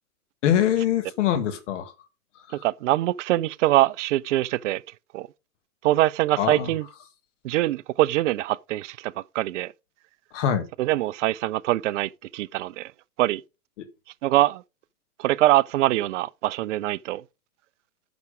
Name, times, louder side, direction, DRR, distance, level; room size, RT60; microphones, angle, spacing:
voice 1, 0.4-1.9 2.5-2.6 6.4-6.7 10.3-10.7 13.8-13.9, left 10 dB, 50° left, 1.6 m, -24 dB
voice 2, 2.6-4.8 5.1-5.3 5.8-6.9 7.4-9.7 10.8-12.9 13.2-13.4 14.2-14.6 15.2-17.2, right 16 dB, 55° right, 0.5 m, -23 dB
10.5 x 6.0 x 5.1 m
hypercardioid pair, 135°, 45 cm